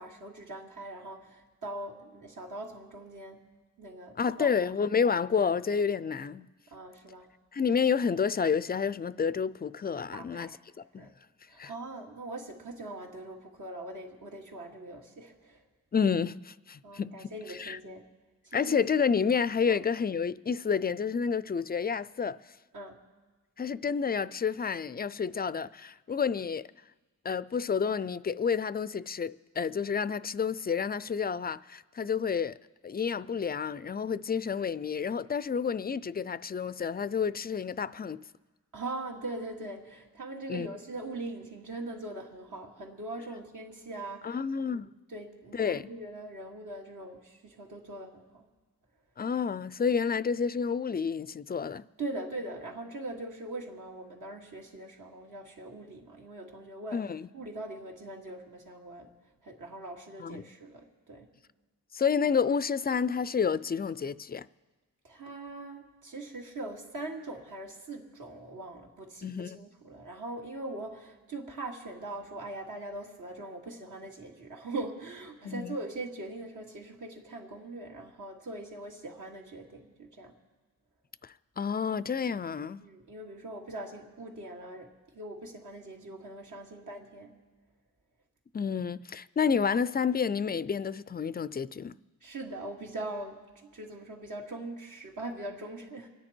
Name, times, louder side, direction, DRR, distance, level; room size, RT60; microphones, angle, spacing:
voice 1, 0.0-3.5 3.8-4.5 6.7-7.3 7.6-7.7 10.1-10.6 11.0-11.1 11.5-15.6 16.8-18.1 18.5-18.8 19.6-19.8 22.7-23.0 38.7-44.4 44.7-48.4 52.0-57.1 57.3-59.1 59.4-61.3 65.0-80.3 82.8-87.4 92.2-96.1, right 2 dB, 65° right, 2.5 m, -41 dB
voice 2, 4.2-6.5 7.5-10.5 10.9-11.1 11.6-11.7 15.9-17.3 17.6-17.8 18.5-22.4 23.6-26.7 27.2-32.6 32.8-38.2 40.5-40.7 44.2-44.9 45.5-45.9 49.2-51.8 56.9-57.3 60.2-60.5 61.9-64.5 69.2-69.6 75.4-75.8 81.6-82.8 88.5-92.0, left 6 dB, 30° left, 0.4 m, -29 dB
26.0 x 9.8 x 4.5 m
cardioid pair, 85°, 34 cm